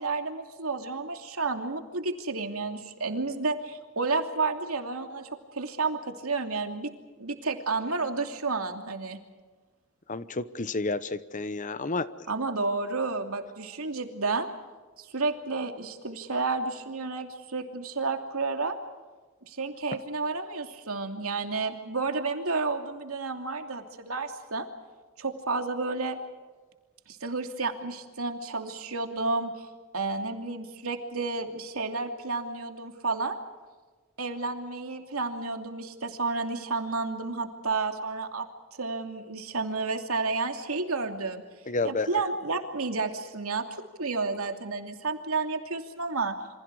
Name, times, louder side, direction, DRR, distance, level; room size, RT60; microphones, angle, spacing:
voice 1, 0.0-6.9 7.2-9.2 12.3-14.5 15.0-18.8 19.5-24.7 25.2-26.2 27.1-33.3 34.2-38.5 38.8-41.4 41.8-43.6 44.0-46.3, right 3 dB, 80° right, 5 dB, 2.8 m, -31 dB
voice 2, 10.1-12.1 41.7-42.1, left 3 dB, 35° left, 14 dB, 0.9 m, -30 dB
28.5 x 25.5 x 4.8 m, 1.4 s
head